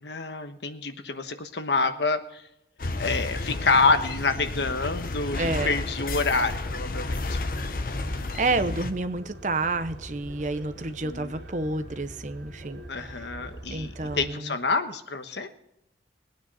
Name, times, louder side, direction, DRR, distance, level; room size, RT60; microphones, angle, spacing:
voice 1, 0.0-2.4 3.0-7.4 10.8-11.3 12.9-15.5, left 3 dB, 80° left, 8 dB, 1.3 m, -27 dB
sound 1, 2.8-8.9, left 2 dB, 50° left, 0.7 m, -31 dB
voice 2, 5.4-5.8 8.4-12.8 13.7-14.6, right 3 dB, 45° right, 11 dB, 0.8 m, -29 dB
sound 2, 7.9-14.3, right 1 dB, 80° right, 2.4 m, -43 dB
20.5 x 9.5 x 4.2 m, 0.83 s
head